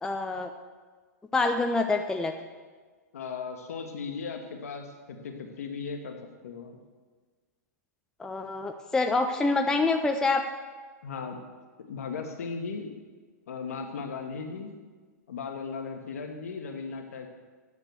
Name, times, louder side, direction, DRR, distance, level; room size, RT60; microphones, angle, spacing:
voice 1, 0.0-0.5 1.3-2.3 8.2-10.4, left 3 dB, 5° left, 5 dB, 0.4 m, -26 dB
voice 2, 3.1-6.2 6.4-6.8 11.0-11.4 11.9-12.9 13.5-14.7 15.3-17.3, left 5 dB, 55° left, 4 dB, 1.4 m, -37 dB
9.6 x 6.6 x 6.4 m, 1.4 s
figure-of-eight pair, 105°, 9 cm